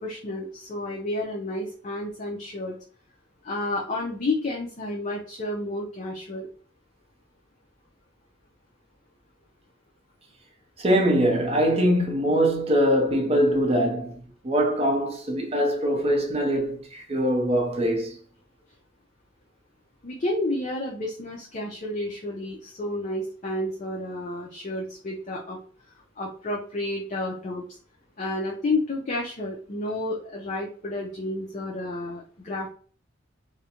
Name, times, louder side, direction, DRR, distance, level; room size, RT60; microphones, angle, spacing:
voice 1, 0.0-2.8 3.4-6.5 20.0-25.6 26.2-27.8 28.2-32.7, left 2 dB, 40° left, 0.5 m, -31 dB
voice 2, 10.8-14.2 14.4-18.2, equal, 30° right, 0.6 m, -22 dB
2.4 x 2.1 x 2.8 m
head